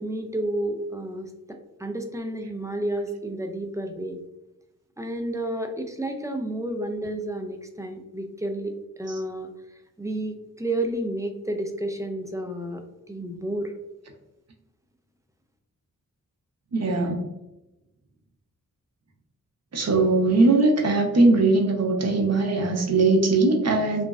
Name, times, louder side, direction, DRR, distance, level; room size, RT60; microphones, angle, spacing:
voice 1, 0.0-4.2 5.0-9.5 10.0-13.7, right 1 dB, 10° right, 4 dB, 0.3 m, -31 dB
voice 2, 16.7-17.2 19.7-24.0, right 3 dB, 50° right, 1 dB, 0.7 m, -20 dB
3.1 x 2.5 x 2.3 m, 0.95 s
wide cardioid pair, 70°, 34 cm